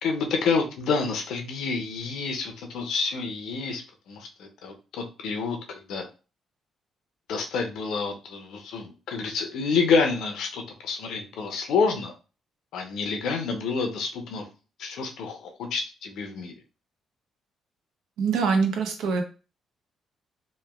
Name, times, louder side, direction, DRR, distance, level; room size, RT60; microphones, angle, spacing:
voice 1, 0.0-6.1 7.3-12.1 12.7-14.5 14.8-16.5, left 4 dB, 80° left, 4 dB, 0.6 m, -28 dB
voice 2, 18.2-19.2, right 5 dB, 85° right, 5 dB, 0.5 m, -24 dB
3.0 x 2.2 x 2.2 m, 0.33 s
cardioid pair, 90°, 0 cm